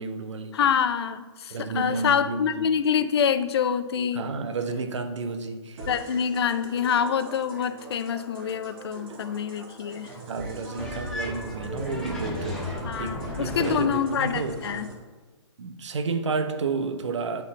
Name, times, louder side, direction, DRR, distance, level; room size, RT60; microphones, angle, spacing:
voice 1, 0.0-0.6 1.5-2.8 4.1-5.9 9.1-9.2 10.3-14.6 15.6-17.4, right 4 dB, 75° right, 7 dB, 0.9 m, -31 dB
voice 2, 0.5-4.2 5.9-10.1 12.8-14.9, left 7 dB, 60° left, 11 dB, 0.5 m, -26 dB
sound 1, 5.8-14.9, right 2 dB, 45° right, 2.0 m, -43 dB
sound 2, 10.8-14.8, left 1 dB, 5° left, 0.7 m, -35 dB
8.9 x 4.1 x 4.1 m, 1.3 s
hypercardioid pair, 160°, 15 cm